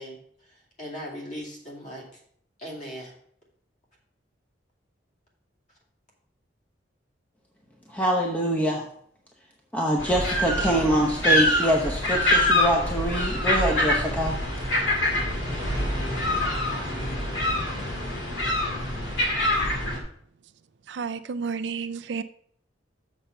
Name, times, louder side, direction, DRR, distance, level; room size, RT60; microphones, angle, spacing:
voice 1, 0.0-2.2 2.6-3.1, equal, 40° left, -2 dB, 2.5 m, -39 dB
voice 2, 7.9-8.8 9.7-14.4, right 1 dB, 10° left, -1 dB, 0.7 m, -24 dB
sound 1, 10.0-20.0, left 1 dB, 90° left, 2.1 m, -25 dB
voice 3, 20.9-22.2, right 5 dB, 65° right, 11 dB, 0.4 m, -31 dB
7.0 x 6.5 x 4.4 m, 0.64 s
head